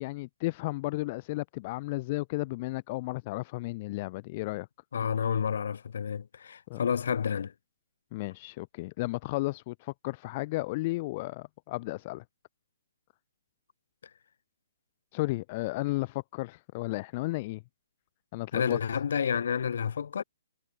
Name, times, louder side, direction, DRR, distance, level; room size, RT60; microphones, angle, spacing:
voice 1, 0.0-4.7 6.7-6.8 8.1-12.2 15.1-17.6 18.3-18.8, left 21 dB, 35° left, 2.0 m, -33 dB
voice 2, 4.9-7.5 18.5-20.2, left 7 dB, 55° left, 0.6 m, -30 dB
figure-of-eight pair, 130°, 0 cm